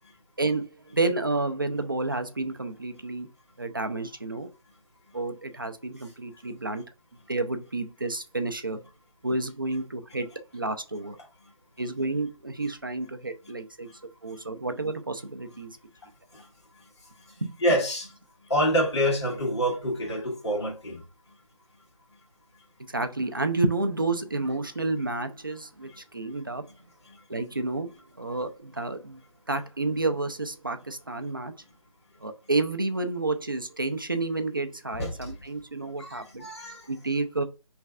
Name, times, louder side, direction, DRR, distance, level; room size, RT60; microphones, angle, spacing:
voice 1, 0.4-3.3 3.6-4.5 5.1-6.8 7.3-8.8 9.2-10.3 10.5-11.2 11.8-13.9 14.2-15.8 17.4-17.5 22.9-26.6 27.3-27.9 28.2-29.2 29.5-31.5 32.2-36.5 36.9-37.4, right 2 dB, 35° right, 0.4 m, -30 dB
voice 2, 17.6-18.1 18.5-21.0 35.0-35.1 36.0-36.9, equal, 50° left, 1.6 m, -26 dB
4.4 x 3.2 x 2.4 m
figure-of-eight pair, 175°, 18 cm